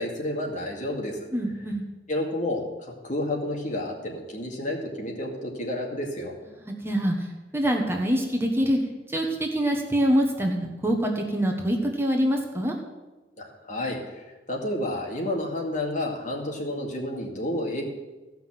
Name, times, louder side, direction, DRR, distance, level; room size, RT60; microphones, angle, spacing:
voice 1, 0.0-1.2 2.1-6.3 13.4-14.0 14.5-17.8, left 1 dB, 45° left, 0 dB, 2.2 m, -30 dB
voice 2, 1.3-1.9 6.5-7.3 7.5-8.8 9.1-12.7, equal, 15° right, 1 dB, 1.2 m, -25 dB
15.0 x 5.9 x 7.4 m, 1.2 s
head